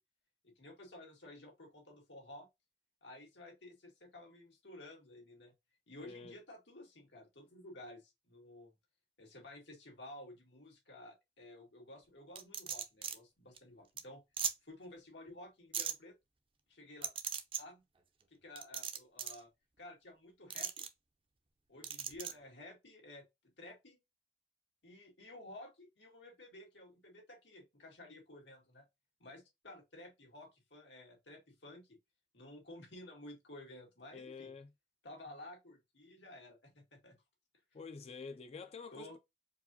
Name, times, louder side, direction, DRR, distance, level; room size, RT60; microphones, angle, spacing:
voice 1, 0.4-2.5 3.0-5.5 5.9-8.7 9.2-14.2 14.6-16.1 16.7-17.1 17.6-17.8 18.3-19.5 19.8-20.9 21.7-23.2 23.6-24.0 24.8-28.9 29.2-32.0 32.3-34.5 35.0-37.2 38.9-39.2, left 1 dB, 90° left, 1.9 m, -53 dB
voice 2, 6.0-6.4 34.1-34.7 37.7-39.2, left 4 dB, 35° left, 0.4 m, -48 dB
sound 1, 12.4-13.2 13.6-13.7 14.0-14.1 14.4-14.5 15.7-15.9 17.0-17.6 18.6-19.4 20.5-20.9 21.8-22.3, right 8 dB, 30° right, 0.5 m, -38 dB
4.6 x 2.5 x 2.7 m
head